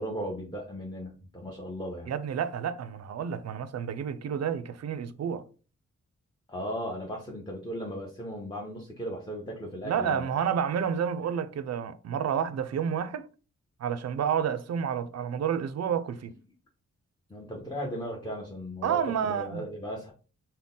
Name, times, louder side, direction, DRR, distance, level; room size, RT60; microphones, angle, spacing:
voice 1, 0.0-2.1 6.5-10.3 17.3-20.1, equal, 15° left, 0.8 m, -36 dB
voice 2, 2.1-5.4 9.8-13.3 13.8-16.3 18.8-19.7, right 8 dB, 60° right, 0.4 m, -30 dB
3.8 x 2.2 x 3.7 m
cardioid pair, 75°, 29 cm